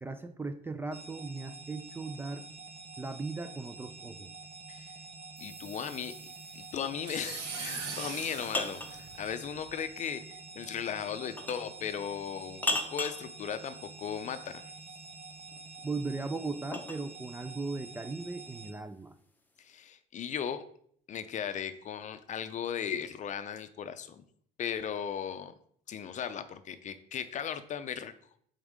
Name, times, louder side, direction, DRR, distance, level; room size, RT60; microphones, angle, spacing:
voice 1, 0.0-2.5 3.0-4.3 15.8-19.2, right 3 dB, 15° right, 10 dB, 0.4 m, -38 dB
sound 1, 0.9-18.7, right 3 dB, 35° right, 0.9 m, -48 dB
voice 2, 5.4-6.1 6.5-14.6 19.6-20.6 21.1-24.2 24.6-25.5 25.9-28.1, left 8 dB, 45° left, 11 dB, 0.5 m, -37 dB
sound 2, 5.4-9.7, right 4 dB, 90° right, 1.2 m, -42 dB
sound 3, 8.4-9.0 11.4-11.7 12.6-13.3 15.5-17.0, left 2 dB, 10° left, 0.8 m, -34 dB
5.3 x 3.6 x 5.0 m, 0.62 s
cardioid pair, 110°, 17 cm